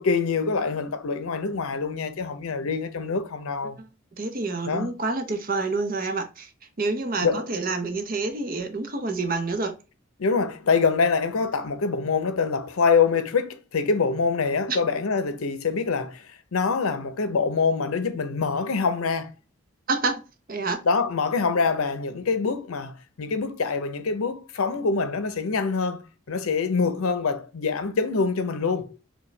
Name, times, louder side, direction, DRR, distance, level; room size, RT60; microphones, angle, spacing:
voice 1, 0.0-3.8 4.7-4.9 7.2-7.4 10.2-19.3 20.8-26.0 26.3-29.0, left 4 dB, 90° left, 0.6 m, -25 dB
voice 2, 4.2-6.5 6.8-9.7 14.7-14.8 19.9-20.2 20.5-20.8, right 3 dB, 40° right, 0.6 m, -27 dB
4.7 x 2.2 x 3.2 m
head